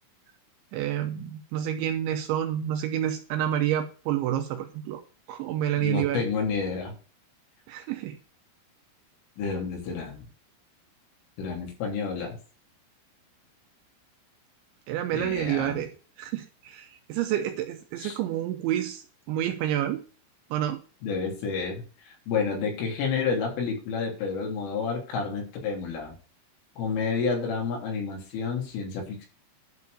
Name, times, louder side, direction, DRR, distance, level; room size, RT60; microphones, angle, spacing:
voice 1, 0.7-5.0 5.3-6.2 7.7-8.2 14.9-15.9 16.2-19.0 19.3-20.0 20.5-20.8, right 11 dB, 80° right, 6 dB, 2.8 m, -28 dB
voice 2, 5.8-6.9 9.4-10.3 11.4-12.4 15.1-15.9 18.0-18.2 21.0-26.2 26.8-29.3, left 5 dB, 70° left, 0 dB, 5.8 m, -30 dB
12.0 x 4.6 x 6.8 m, 0.38 s
omnidirectional pair, 5.9 m